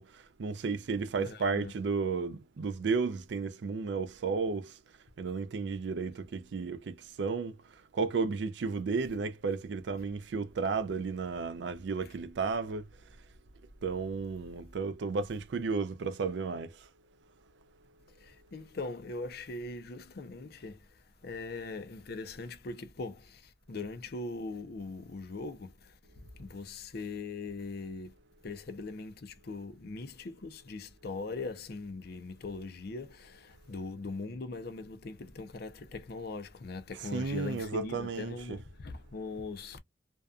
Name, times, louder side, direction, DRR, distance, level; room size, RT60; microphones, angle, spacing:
voice 1, 0.0-4.8 5.2-7.6 7.9-12.9 13.8-16.9 37.1-38.6, right 4 dB, 65° right, 0.4 m, -33 dB
voice 2, 1.2-1.7 18.2-28.1 28.4-39.8, left 3 dB, 55° left, 0.5 m, -41 dB
2.6 x 2.3 x 2.3 m
head